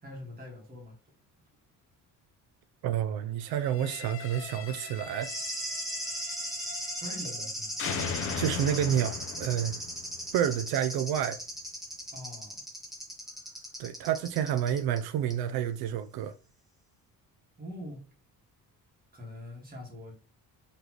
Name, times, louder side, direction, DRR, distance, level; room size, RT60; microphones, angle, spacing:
voice 1, 0.0-1.0 7.0-7.8 12.1-12.6 17.6-18.1 19.1-20.1, left 1 dB, 25° right, 1.5 m, -43 dB
voice 2, 2.8-5.3 8.4-9.8 10.3-11.4 13.8-16.3, right 10 dB, 90° right, 0.5 m, -29 dB
sound 1, 3.6-7.5 7.8-10.8, left 6 dB, 40° left, 0.6 m, -39 dB
sound 2, 5.2-15.0 15.3-15.4, right 1 dB, ahead, 1.1 m, -38 dB
4.1 x 3.4 x 2.9 m
cardioid pair, 160°, 36 cm